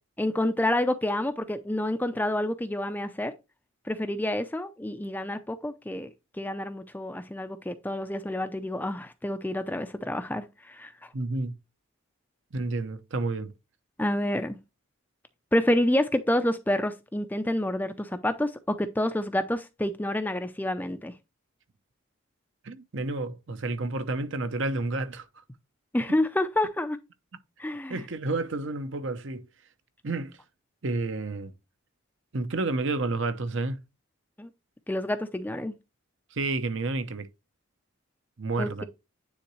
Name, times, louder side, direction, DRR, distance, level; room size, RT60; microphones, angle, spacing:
voice 1, 0.2-3.3 3.9-6.1 6.4-11.1 14.0-14.6 15.5-21.1 25.9-27.0 27.6-28.0 34.4-34.5 34.9-35.7 38.6-38.8, left 1 dB, 10° left, 0.4 m, -28 dB
voice 2, 11.1-11.5 12.5-13.5 22.6-25.3 27.9-29.4 30.0-30.3 30.8-31.5 32.3-33.8 36.3-37.3 38.4-38.8, right 2 dB, 60° right, 0.7 m, -30 dB
9.6 x 3.8 x 3.1 m
head